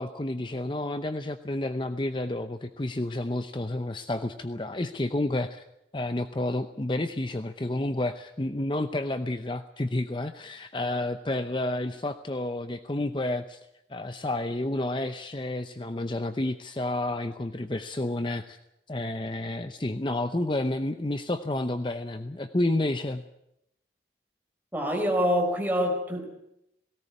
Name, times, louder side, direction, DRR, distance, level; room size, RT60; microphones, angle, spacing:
voice 1, 0.0-5.6 5.9-13.6 13.9-18.6 18.9-23.2, left 1 dB, 25° left, 9 dB, 0.7 m, -30 dB
voice 2, 24.7-26.3, equal, 10° right, 1 dB, 4.6 m, -25 dB
18.0 x 17.5 x 9.7 m, 0.81 s
head